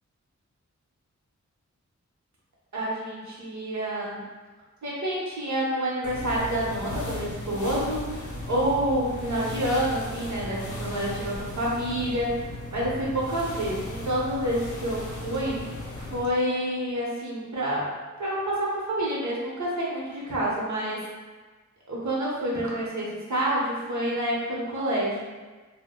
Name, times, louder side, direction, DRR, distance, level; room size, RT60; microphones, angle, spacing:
voice 1, 2.7-4.2 4.8-12.4 12.7-15.6 16.0-17.9 18.2-21.0 21.9-25.3, right 1 dB, 70° right, -5 dB, 0.8 m, -28 dB
sound 1, 6.0-16.3, left 2 dB, 85° left, 0.5 m, -36 dB
2.1 x 2.1 x 3.5 m, 1.3 s
wide cardioid pair, 90°, 30 cm